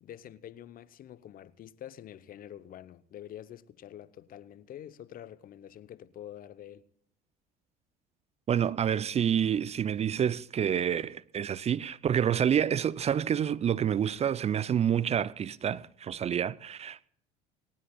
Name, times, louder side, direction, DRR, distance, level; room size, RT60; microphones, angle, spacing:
voice 1, 0.0-6.9, left 11 dB, 45° left, 0.8 m, -47 dB
voice 2, 8.5-17.0, right 9 dB, 35° right, 0.5 m, -28 dB
19.0 x 18.5 x 2.3 m
hypercardioid pair, 70°, 20 cm